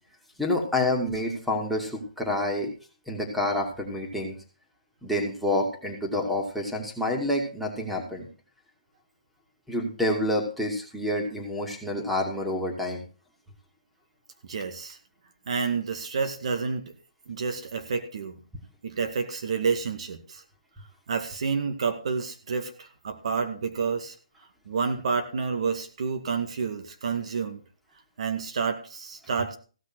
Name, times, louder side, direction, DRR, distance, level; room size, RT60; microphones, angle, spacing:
voice 1, 0.4-2.7 3.1-4.3 5.0-8.3 9.7-13.0, left 1 dB, ahead, 1 dB, 2.6 m, -28 dB
voice 2, 14.5-15.0 15.5-16.9 17.3-18.4 18.8-20.4 21.1-24.1 24.7-27.6 28.2-29.6, right 5 dB, 60° right, 7 dB, 2.1 m, -29 dB
16.0 x 6.3 x 6.2 m, 0.36 s
hypercardioid pair, 145°, 4 cm